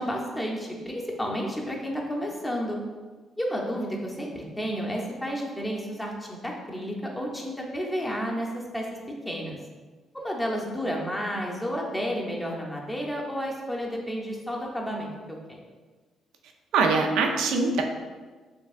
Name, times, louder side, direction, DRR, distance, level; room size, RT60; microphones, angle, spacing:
voice 1, 0.0-2.8 3.4-8.9 9.2-9.6 10.1-15.6, equal, 10° left, -1 dB, 0.8 m, -31 dB
voice 2, 16.7-17.8, right 4 dB, 90° right, 3 dB, 0.5 m, -23 dB
4.5 x 3.3 x 2.5 m, 1.4 s
cardioid pair, 90°, 0 cm